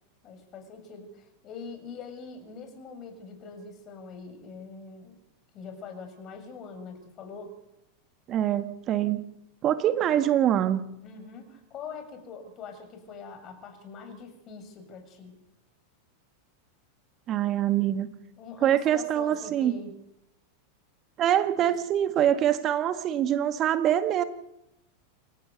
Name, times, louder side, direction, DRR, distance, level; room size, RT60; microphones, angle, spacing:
voice 1, 0.2-5.2 5.5-7.6 11.0-15.4 18.4-20.0 21.6-21.8, left 5 dB, 35° left, 6 dB, 6.9 m, -43 dB
voice 2, 8.3-9.2 9.6-10.8 17.3-18.1 18.6-19.7 21.2-24.2, right 11 dB, 35° right, 10 dB, 1.6 m, -24 dB
27.5 x 15.0 x 6.8 m, 0.86 s
figure-of-eight pair, 90°, 0 cm